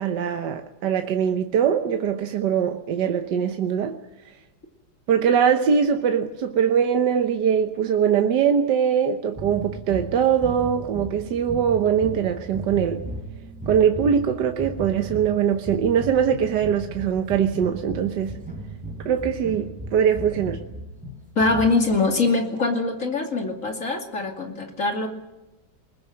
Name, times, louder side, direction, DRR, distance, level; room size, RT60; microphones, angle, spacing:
voice 1, 0.0-4.0 5.1-13.0 13.7-18.4 19.0-20.6, right 8 dB, 75° right, 1.7 m, -22 dB
sound 1, 9.3-22.0, right 2 dB, 5° right, 6.0 m, -36 dB
voice 2, 21.4-25.1, left 3 dB, 45° left, 2.8 m, -23 dB
21.5 x 20.0 x 7.6 m
omnidirectional pair, 1.9 m